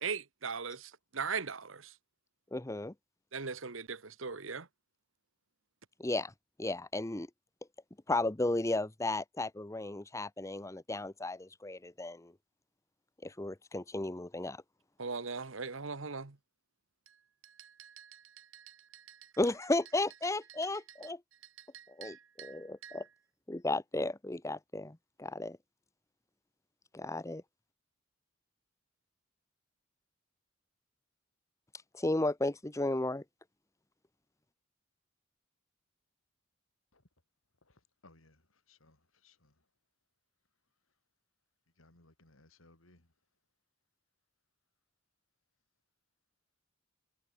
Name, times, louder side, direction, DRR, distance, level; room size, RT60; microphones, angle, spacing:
voice 1, 0.0-1.9 3.3-4.7 15.0-16.4 17.4-19.3 21.6-23.0, right 5 dB, 70° right, 1.3 m, -40 dB
voice 2, 2.5-2.9 6.0-6.3 6.6-7.3 8.1-12.3 13.2-14.6 19.4-21.2 21.9-23.1 23.5-25.6 26.9-27.4 31.9-33.2, left 2 dB, 15° left, 0.8 m, -34 dB
voice 3, 38.0-38.4 38.7-39.0 39.2-39.5 41.8-43.1, left 2 dB, 90° left, 4.2 m, -62 dB
head